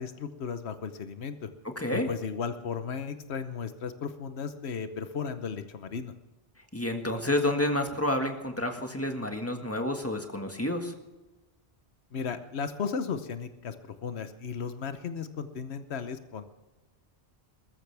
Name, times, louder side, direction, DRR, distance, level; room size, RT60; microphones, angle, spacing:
voice 1, 0.0-1.5 1.9-6.1 12.1-16.4, left 6 dB, 90° left, 10 dB, 1.2 m, -35 dB
voice 2, 1.7-2.1 6.7-10.9, left 1 dB, 15° left, 4 dB, 1.7 m, -29 dB
21.5 x 14.0 x 3.4 m, 1.1 s
omnidirectional pair, 1.1 m